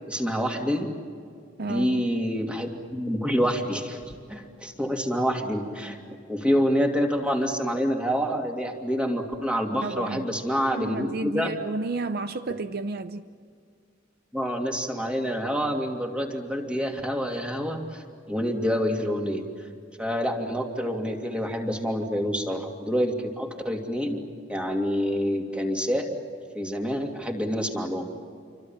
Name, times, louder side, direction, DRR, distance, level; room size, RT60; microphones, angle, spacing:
voice 1, 0.1-0.9 1.6-4.0 4.3-6.0 6.3-11.5 14.3-19.4 20.0-24.2 24.5-26.1 26.5-28.0, equal, 5° right, 2.8 m, -27 dB
voice 2, 1.6-2.0 9.8-10.3 10.7-13.3, right 3 dB, 50° right, 0.7 m, -32 dB
29.0 x 24.5 x 7.4 m
head